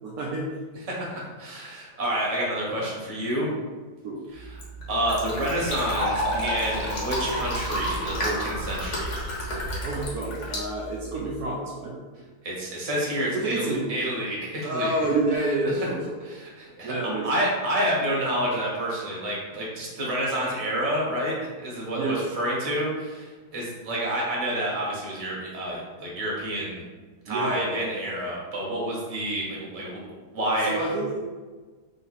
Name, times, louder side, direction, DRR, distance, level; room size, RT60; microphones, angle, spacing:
voice 1, 0.0-0.5 4.0-4.2 9.8-11.9 13.3-13.9 14.6-16.2 16.8-17.4 21.9-22.2 27.2-27.8 30.6-31.2, right 2 dB, 70° right, -3 dB, 1.1 m, -28 dB
voice 2, 0.9-3.5 4.3-4.6 4.9-9.2 12.4-14.9 16.3-16.9 17.2-26.8 27.2-30.0 30.3-30.7, right 1 dB, 25° right, -5 dB, 0.9 m, -29 dB
Fill (with liquid), 4.3-11.4, equal, 50° left, 1.2 m, -30 dB
3.9 x 2.7 x 4.1 m, 1.4 s
omnidirectional pair, 1.8 m